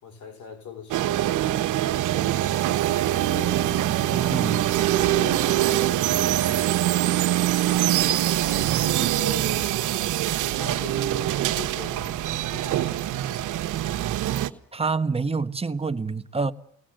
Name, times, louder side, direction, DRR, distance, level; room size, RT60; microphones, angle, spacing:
voice 1, 0.0-1.3 2.1-4.0 4.9-6.1 7.0-7.6 8.8-9.7 10.5-13.7, left 7 dB, 75° left, 4.3 m, -43 dB
sound 1, 0.9-14.5, right 13 dB, 85° right, 1.2 m, -24 dB
voice 2, 4.1-4.8 14.7-16.5, right 4 dB, 20° right, 1.3 m, -27 dB
23.0 x 18.5 x 7.8 m
cardioid pair, 90°, 30 cm